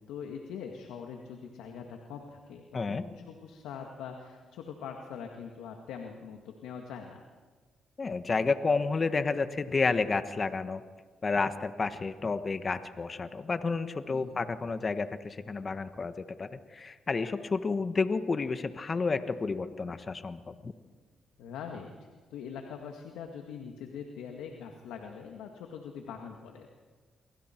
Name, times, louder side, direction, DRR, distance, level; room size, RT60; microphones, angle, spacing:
voice 1, 0.0-7.2 14.1-14.4 21.4-26.8, left 7 dB, 85° left, 3 dB, 2.0 m, -43 dB
voice 2, 8.0-10.8 11.2-20.7, left 4 dB, 40° left, 10 dB, 1.3 m, -30 dB
29.5 x 24.0 x 4.6 m, 1.4 s
supercardioid pair, 55°, 0 cm